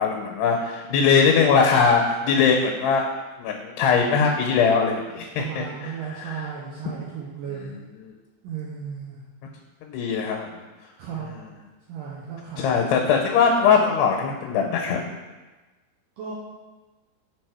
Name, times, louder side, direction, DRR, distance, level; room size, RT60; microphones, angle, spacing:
voice 1, 0.0-3.0 3.4-5.9 6.2-6.5 7.6-8.1 9.9-10.5 12.6-15.0, left 5 dB, 85° left, 1 dB, 2.8 m, -21 dB
voice 2, 5.4-7.8 8.4-9.2 11.0-11.3 11.9-13.1 16.2-16.3, right 7 dB, 80° right, -3 dB, 1.9 m, -35 dB
6.2 x 4.6 x 4.7 m, 1.2 s
omnidirectional pair, 4.7 m